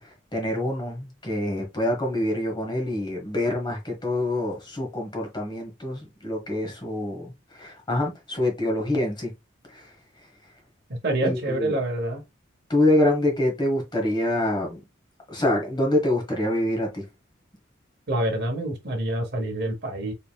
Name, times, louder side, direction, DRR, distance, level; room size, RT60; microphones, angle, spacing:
voice 1, 0.0-9.3 9.7-9.9 11.2-11.8 12.7-14.8 15.3-17.0, left 1 dB, 20° left, 1.3 m, -26 dB
voice 2, 11.0-12.2 18.1-20.1, right 1 dB, 55° right, 0.9 m, -26 dB
4.0 x 3.4 x 2.3 m
head